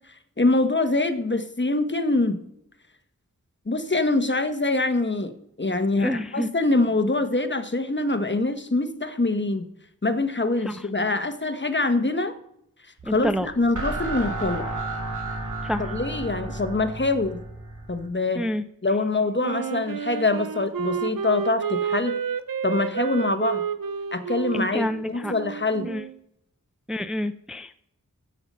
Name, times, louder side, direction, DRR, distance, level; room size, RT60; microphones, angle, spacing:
voice 1, 0.4-2.4 3.7-5.3 5.6-9.7 10.0-12.3 13.0-14.7 15.8-17.4 17.9-18.4 18.8-22.1 22.6-23.6 24.1-25.9, left 2 dB, 35° left, 9 dB, 1.2 m, -24 dB
voice 2, 6.0-6.5 10.6-10.8 13.0-13.5 15.6-15.9 18.4-18.6 24.5-25.3 25.8-26.0 26.9-27.8, equal, ahead, 10 dB, 0.5 m, -28 dB
sound 1, 13.0-18.1, right 2 dB, 60° right, 3.0 m, -33 dB
Wind instrument woodwind instrument, 19.4-26.2, right 7 dB, 75° right, 0.7 m, -30 dB
16.0 x 5.8 x 5.5 m, 0.76 s
wide cardioid pair, 45°, 34 cm